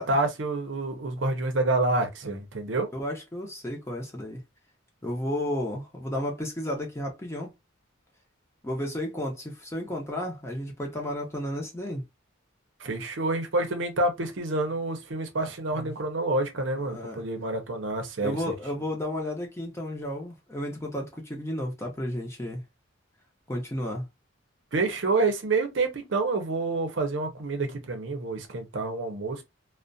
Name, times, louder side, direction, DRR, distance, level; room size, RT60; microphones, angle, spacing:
voice 1, 0.0-2.9 12.8-18.4 24.7-29.4, right 2 dB, 65° right, 0.6 m, -28 dB
voice 2, 2.9-4.4 5.0-7.5 8.6-12.0 15.8-15.9 16.9-17.2 18.2-22.6 23.5-24.0, left 1 dB, 15° left, 0.6 m, -32 dB
2.4 x 2.1 x 2.5 m
head